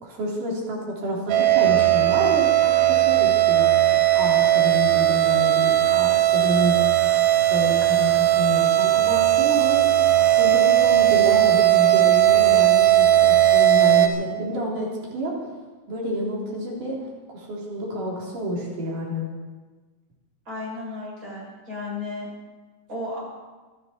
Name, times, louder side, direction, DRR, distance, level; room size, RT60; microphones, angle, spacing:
voice 1, 0.0-3.7 4.1-6.8 7.5-9.9 10.2-15.5 15.9-17.0 17.3-19.3, equal, 40° right, -3 dB, 4.6 m, -29 dB
sound 1, 1.3-14.1, right 13 dB, 75° right, 2.6 m, -18 dB
voice 2, 20.5-22.3 22.9-23.2, left 2 dB, 15° right, -5 dB, 7.2 m, -33 dB
25.5 x 11.5 x 4.5 m, 1.3 s
omnidirectional pair, 5.9 m